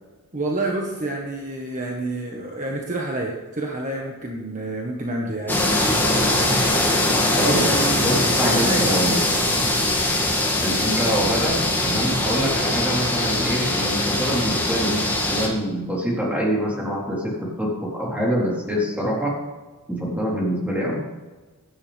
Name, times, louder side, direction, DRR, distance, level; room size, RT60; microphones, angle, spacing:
voice 1, 0.3-5.7 6.0-6.4 7.5-8.0 8.3-8.8, right 2 dB, 35° right, 0 dB, 1.5 m, -28 dB
sound 1, 5.5-15.5, left 1 dB, 10° left, 2.3 m, -21 dB
voice 2, 7.3-7.7 8.0-9.3 10.6-15.0 15.3-19.3 19.9-21.0, equal, 5° right, -4 dB, 3.9 m, -25 dB
16.5 x 11.0 x 3.5 m, 1.3 s
head